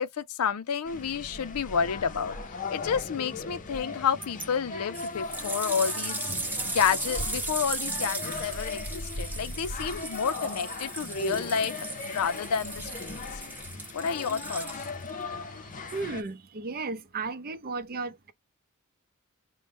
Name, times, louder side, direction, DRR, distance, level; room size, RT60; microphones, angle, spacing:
voice 1, 0.0-2.4 2.7-6.2 6.7-11.7 12.0-13.3 13.9-14.9, left 7 dB, 85° left, 0.5 m, -30 dB
sound 1, 0.8-16.2, left 3 dB, 35° left, 0.6 m, -38 dB
sound 2, 4.2-4.5 4.9-15.1 15.9-16.0, right 2 dB, 10° right, 0.9 m, -36 dB
voice 2, 15.6-18.3, right 3 dB, 45° right, 0.6 m, -35 dB
5.2 x 2.1 x 3.4 m
head